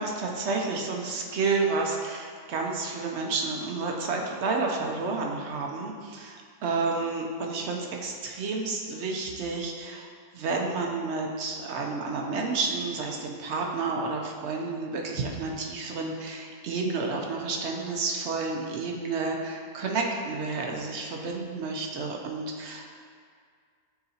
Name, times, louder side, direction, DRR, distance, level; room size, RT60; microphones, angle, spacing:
voice 1, 0.0-10.1 10.3-22.9, right 3 dB, 60° right, 1 dB, 0.7 m, -30 dB
9.4 x 4.0 x 2.7 m, 2.1 s
omnidirectional pair, 1.7 m